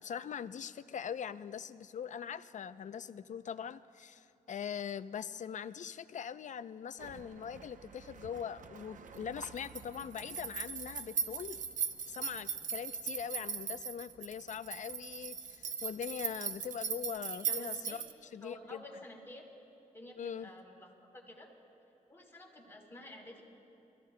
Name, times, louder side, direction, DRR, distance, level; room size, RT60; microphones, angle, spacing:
voice 1, 0.0-11.6 12.1-18.0 18.3-18.8 20.2-20.5, left 8 dB, 60° left, 14 dB, 0.5 m, -42 dB
sound 1, 7.0-18.1, right 6 dB, 70° right, 0.7 m, -40 dB
voice 2, 17.3-18.0 18.4-19.5 19.9-21.5 22.1-23.4, left 1 dB, 15° left, -1 dB, 3.6 m, -51 dB
28.0 x 15.5 x 2.2 m, 2.7 s
cardioid pair, 60°, 14 cm